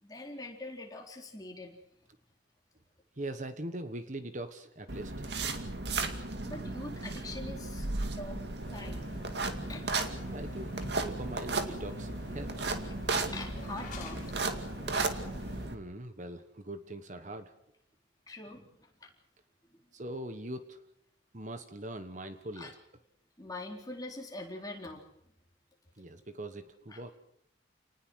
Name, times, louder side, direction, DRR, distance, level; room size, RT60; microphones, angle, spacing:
voice 1, 0.0-1.8 6.4-9.1 9.7-9.9 13.3-14.2 18.3-19.1 19.7-19.8 22.6-22.7 23.4-25.0 26.9-27.0, left 2 dB, 20° left, 1 dB, 4.0 m, -43 dB
voice 2, 3.2-5.1 10.2-12.8 15.7-17.5 19.9-20.8 21.3-22.7 26.0-27.1, right 1 dB, 40° right, 9 dB, 1.3 m, -42 dB
sound 1, 4.9-15.7, right 3 dB, 60° right, 2.3 m, -35 dB
sound 2, 8.6-15.7, left 1 dB, 40° left, 7.1 m, -47 dB
29.0 x 19.5 x 6.4 m, 0.74 s
head